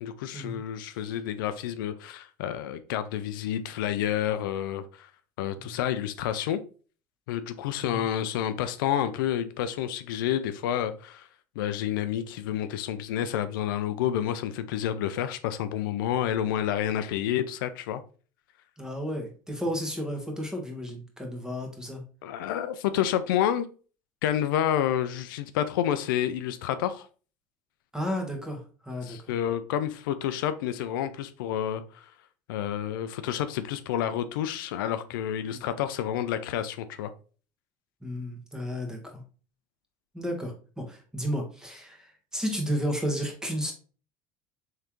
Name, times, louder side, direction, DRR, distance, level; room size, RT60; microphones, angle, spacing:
voice 1, 0.0-5.1 5.4-6.6 7.3-11.3 11.6-18.0 22.2-23.7 24.2-27.1 29.0-32.0 32.5-37.1, left 10 dB, 85° left, 0.4 m, -29 dB
voice 2, 18.8-22.0 27.9-29.3 35.5-35.6 38.0-39.2 40.1-43.7, equal, 5° right, 1.2 m, -33 dB
3.7 x 3.3 x 3.0 m
supercardioid pair, 100°, 11 cm